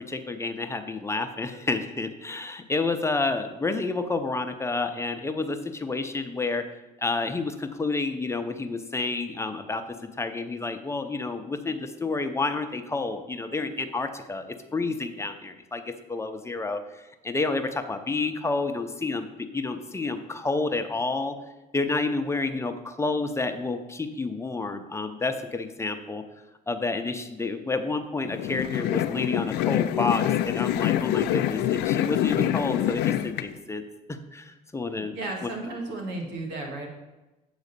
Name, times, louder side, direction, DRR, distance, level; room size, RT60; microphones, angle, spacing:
voice 1, 0.1-6.6 7.0-14.5 14.7-15.8 16.1-19.3 19.5-21.4 21.7-26.2 26.7-33.8 34.1-35.2 35.4-35.5, left 3 dB, 15° left, 6 dB, 0.6 m, -29 dB
sound 1, 28.3-33.4, left 12 dB, 85° left, 0.4 m, -25 dB
voice 2, 34.9-36.9, right 2 dB, 90° right, 1 dB, 1.9 m, -34 dB
8.3 x 4.0 x 6.6 m, 1.1 s
cardioid pair, 110°, 17 cm